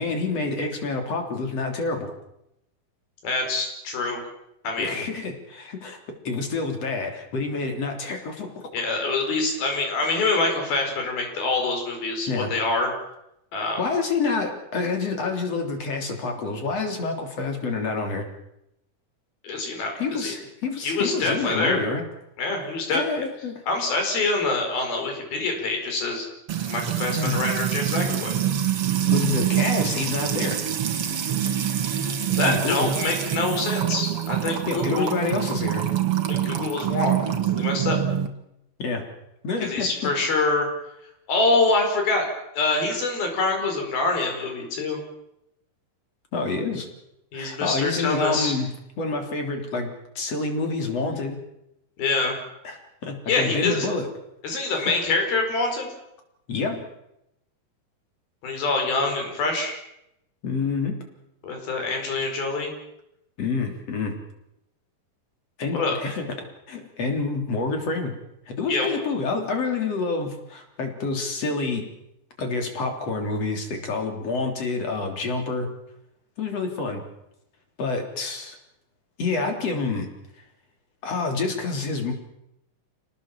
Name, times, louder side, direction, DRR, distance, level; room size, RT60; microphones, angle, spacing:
voice 1, 0.0-2.1 4.8-6.0 6.2-8.7 12.3-12.5 13.8-18.3 20.0-22.0 22.9-23.6 27.1-27.4 29.1-30.6 32.4-32.9 34.7-35.8 38.8-39.0 39.4-40.1 46.3-46.9 47.3-48.7 49.0-51.4 52.6-54.1 54.7-54.9 56.5-56.9 60.4-61.0 63.4-64.1 65.6-68.1 68.5-71.9 72.4-75.7 76.4-77.0 77.8-78.6 79.2-80.1 81.0-82.1, left 3 dB, 45° left, 4 dB, 4.3 m, -28 dB
voice 2, 3.2-4.2 4.6-5.0 8.7-12.9 13.5-13.8 19.4-20.3 20.8-21.8 22.4-23.0 23.7-26.3 26.7-28.4 31.9-35.1 36.3-38.0 39.6-40.7 41.3-42.3 42.5-45.0 47.3-48.5 52.0-52.3 53.3-53.9 54.4-55.9 58.4-59.8 61.4-62.7 65.7-66.0 68.7-69.0, left 3 dB, 90° left, 3 dB, 6.7 m, -25 dB
Music / Water tap faucet / Trickle dribble, 26.5-38.3, right 10 dB, 50° right, 2.1 m, -25 dB
28.0 x 18.5 x 7.5 m, 0.84 s
omnidirectional pair, 4.1 m